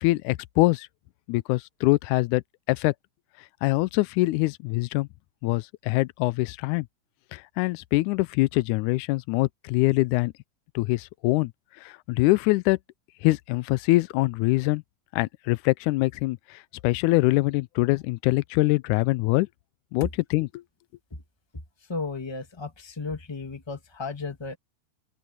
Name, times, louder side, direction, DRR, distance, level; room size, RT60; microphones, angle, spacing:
voice 1, 0.0-0.9 1.3-2.4 2.7-2.9 3.6-5.1 5.4-6.9 7.3-10.3 10.8-11.5 11.8-12.8 13.2-14.8 15.1-16.4 16.8-19.5 19.9-20.6, left 21 dB, 80° left, 1.9 m, -24 dB
voice 2, 21.9-24.6, left 4 dB, 15° left, 1.1 m, -34 dB
open air
omnidirectional pair, 3.7 m